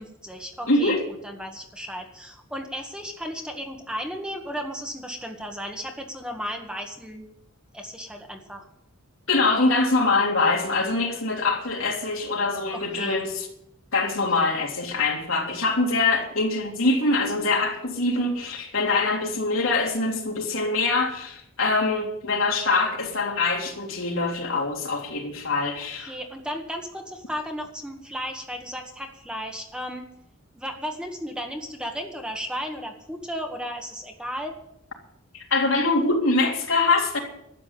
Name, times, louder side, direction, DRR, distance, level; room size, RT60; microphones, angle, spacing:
voice 1, 0.0-7.3 7.7-8.7 12.7-13.2 14.2-14.5 26.0-30.1 30.5-34.6, equal, 5° right, 1.7 m, -34 dB
voice 2, 0.7-1.0 9.3-13.3 13.9-26.1 35.3-37.2, left 3 dB, 80° left, 3.5 m, -24 dB
12.5 x 9.0 x 9.1 m
head